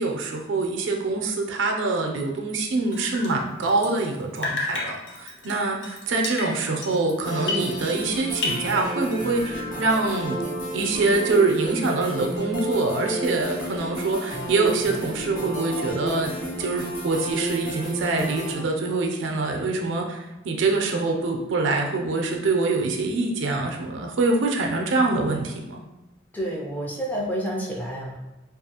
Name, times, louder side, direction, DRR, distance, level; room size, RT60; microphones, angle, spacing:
voice 1, 0.0-10.4 10.7-25.8, right 3 dB, 85° right, 2 dB, 0.4 m, -25 dB
Drip, 2.9-4.1 4.4-8.1 8.4-9.4, left 3 dB, 70° left, 0.5 m, -33 dB
sound 1, 7.2-18.5, right 1 dB, 45° left, 0.9 m, -31 dB
voice 2, 26.3-28.2, equal, 10° left, -3 dB, 0.4 m, -29 dB
2.6 x 2.3 x 2.8 m, 1.0 s
head